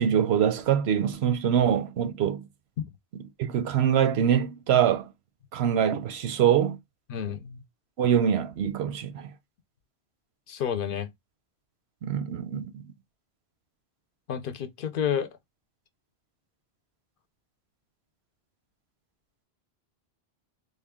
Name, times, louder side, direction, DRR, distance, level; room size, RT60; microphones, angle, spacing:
voice 1, 0.0-2.4 3.5-5.1 5.5-6.8 8.0-9.3 12.0-12.8, right 9 dB, 90° right, 0.9 m, -24 dB
voice 2, 7.1-7.6 10.5-11.1 14.3-15.3, left 8 dB, 65° left, 0.7 m, -30 dB
3.7 x 2.2 x 3.5 m
omnidirectional pair, 1.0 m